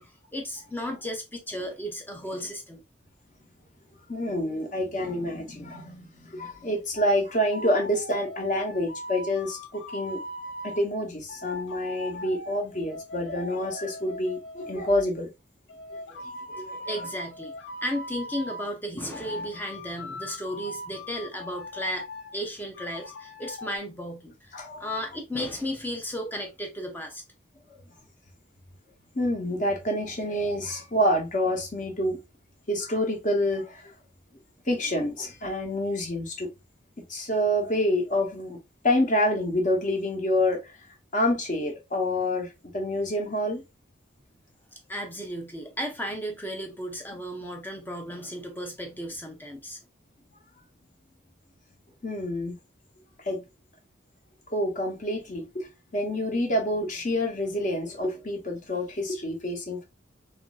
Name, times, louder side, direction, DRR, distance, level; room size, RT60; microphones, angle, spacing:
voice 1, 0.0-2.8 16.9-17.5 17.8-22.1 22.3-27.2 44.9-49.8, equal, 10° left, 0.5 m, -34 dB
voice 2, 4.1-10.2 10.6-15.3 16.5-17.0 19.0-19.1 24.5-24.9 27.7-27.8 29.1-32.2 32.7-33.9 34.7-36.5 37.0-38.6 38.8-40.7 41.1-43.6 52.0-52.6 53.2-53.4 54.5-59.8, left 1 dB, 40° left, 0.8 m, -27 dB
sound 1, 7.0-7.2 7.5-10.8 11.3-15.0 15.7-18.7 19.1-22.3 22.7-23.8, left 1 dB, 70° left, 0.4 m, -40 dB
3.0 x 2.5 x 2.3 m
head